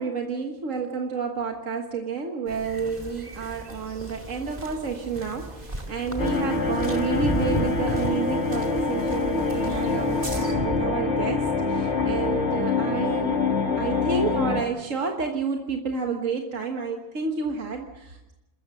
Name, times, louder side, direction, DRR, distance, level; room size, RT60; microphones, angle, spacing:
voice 1, 0.0-13.4 13.8-18.3, right 5 dB, 85° right, 3 dB, 1.9 m, -30 dB
sound 1, 2.5-10.5, right 1 dB, 30° right, 2.6 m, -40 dB
sound 2, 5.9-12.3, right 1 dB, 20° left, 2.3 m, -34 dB
sound 3, 6.2-14.6, left 4 dB, 60° left, 1.9 m, -25 dB
27.5 x 14.0 x 7.7 m, 0.98 s
omnidirectional pair, 1.3 m